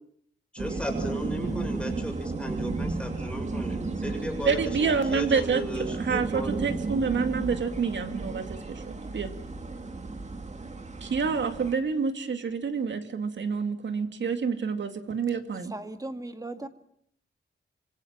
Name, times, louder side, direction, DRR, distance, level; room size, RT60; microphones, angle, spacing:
voice 1, 0.5-6.6, equal, 5° left, 4 dB, 6.9 m, -36 dB
sound 1, 0.6-11.7, right 3 dB, 35° right, 2.2 m, -33 dB
voice 2, 4.5-9.3 11.0-15.7, right 5 dB, 70° right, 7 dB, 2.4 m, -28 dB
voice 3, 15.7-16.7, right 2 dB, 20° right, 8 dB, 1.8 m, -37 dB
26.5 x 26.5 x 7.5 m, 0.67 s
wide cardioid pair, 150°, 20 cm